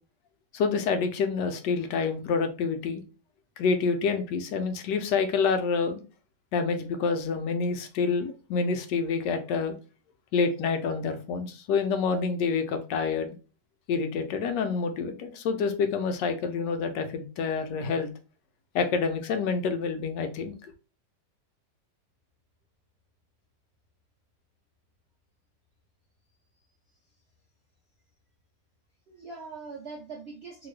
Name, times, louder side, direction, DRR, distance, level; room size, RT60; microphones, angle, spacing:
voice 1, 0.5-3.0 3.6-6.0 6.5-9.8 10.3-13.3 13.9-18.1 18.7-20.5, left 5 dB, 90° left, 1.2 m, -27 dB
voice 2, 26.6-27.0 29.1-30.7, right 4 dB, 70° right, 0.6 m, -42 dB
2.9 x 2.6 x 3.1 m
omnidirectional pair, 1.8 m